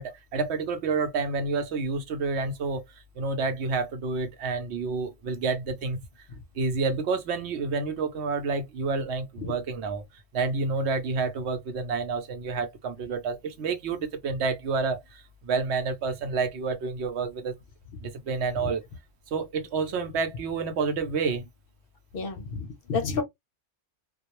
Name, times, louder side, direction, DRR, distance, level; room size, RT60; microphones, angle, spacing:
voice 1, 0.0-2.8 3.2-6.0 6.6-10.0 10.3-17.5 18.0-18.8 19.3-21.5, right 4 dB, 70° right, 0.8 m, -29 dB
voice 2, 22.1-23.2, left 4 dB, 60° left, 0.7 m, -30 dB
2.3 x 2.0 x 2.9 m
omnidirectional pair, 1.2 m